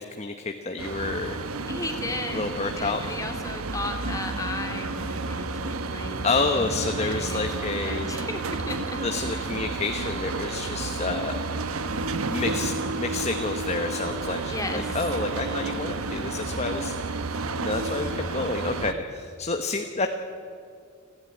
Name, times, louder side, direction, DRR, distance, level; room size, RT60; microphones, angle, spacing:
voice 1, 0.0-1.4 2.3-3.0 6.2-8.1 9.0-11.4 12.3-17.2 17.6-20.1, left 3 dB, 30° left, 6 dB, 1.1 m, -29 dB
sound 1, 0.8-18.9, right 3 dB, 75° right, 1.2 m, -31 dB
voice 2, 1.7-6.6 7.0-9.4 14.5-15.0 15.4-15.6, left 2 dB, 15° left, 4 dB, 2.5 m, -35 dB
30.0 x 11.5 x 9.6 m, 2.3 s
head